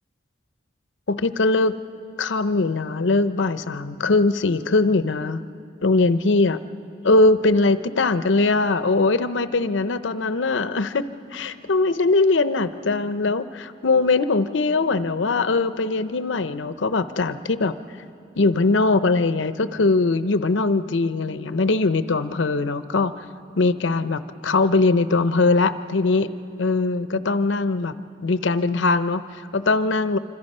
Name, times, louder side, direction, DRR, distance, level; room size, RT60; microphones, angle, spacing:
voice 1, 1.1-1.7 2.2-5.4 5.8-6.6 7.0-11.0 11.3-17.8 18.4-23.1 23.6-26.3 26.6-27.9 28.2-30.2, left 3 dB, 85° left, 12 dB, 0.7 m, -21 dB
26.5 x 25.5 x 5.5 m, 2.6 s
head